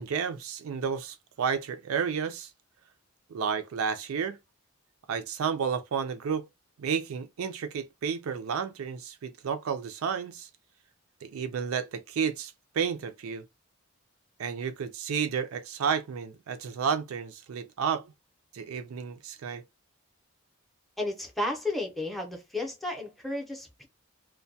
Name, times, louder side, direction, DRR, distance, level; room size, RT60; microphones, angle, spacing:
voice 1, 0.0-2.5 3.3-4.4 5.1-6.5 6.8-10.5 11.2-13.4 14.4-18.0 18.5-19.6, right 6 dB, 70° right, 0.4 m, -31 dB
voice 2, 21.0-23.9, left 2 dB, ahead, 0.6 m, -33 dB
2.2 x 2.1 x 2.6 m
head